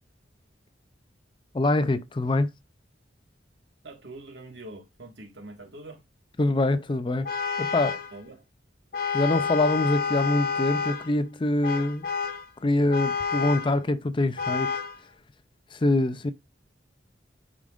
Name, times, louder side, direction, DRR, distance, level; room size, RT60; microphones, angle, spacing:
voice 1, 1.5-2.5 6.4-7.3 7.6-8.0 9.1-12.1 12.6-14.7 15.7-16.3, left 2 dB, 25° left, 0.5 m, -24 dB
voice 2, 3.8-6.0 8.1-8.5, right 2 dB, 65° right, 1.8 m, -44 dB
Vehicle horn car horn honking, 7.2-8.1 8.9-11.1 11.6-12.5 12.9-13.8 14.4-15.0, left 5 dB, 55° left, 1.1 m, -29 dB
8.8 x 5.0 x 2.5 m
head